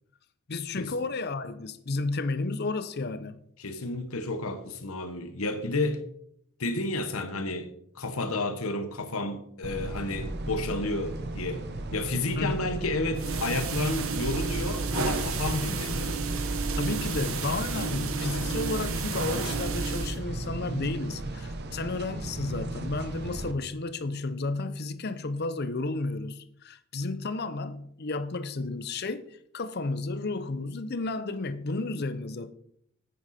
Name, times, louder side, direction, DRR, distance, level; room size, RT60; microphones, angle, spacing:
voice 1, 0.5-3.4 12.4-12.7 16.8-32.5, left 3 dB, 45° left, 0.6 m, -32 dB
voice 2, 3.6-6.0 6.6-11.7 11.9-16.2, left 2 dB, 75° left, 1.2 m, -31 dB
sound 1, 9.6-23.5, right 1 dB, 50° right, 0.9 m, -36 dB
sound 2, 13.1-20.2, right 4 dB, 70° right, 1.2 m, -31 dB
9.3 x 9.0 x 4.3 m
head